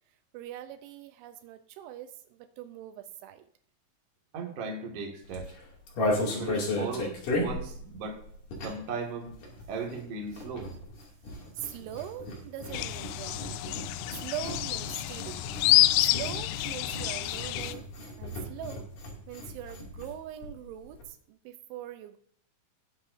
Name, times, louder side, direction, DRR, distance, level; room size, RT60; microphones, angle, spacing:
voice 1, 0.3-3.4 11.5-13.6 14.2-15.4 16.0-17.8 18.2-18.9 19.3-22.2, right 11 dB, 80° right, 9 dB, 3.1 m, -42 dB
voice 2, 4.3-5.5 6.3-8.2 8.6-9.4 9.7-10.7, right 4 dB, 45° right, 1 dB, 2.2 m, -37 dB
sound 1, 5.2-9.0 9.2-20.1 20.4-20.5 20.7-21.0, left 1 dB, 50° left, 3.8 m, -35 dB
sound 2, 12.7-17.7, left 17 dB, 90° left, 3.1 m, -28 dB
19.0 x 7.6 x 2.7 m, 0.66 s
omnidirectional pair, 5.5 m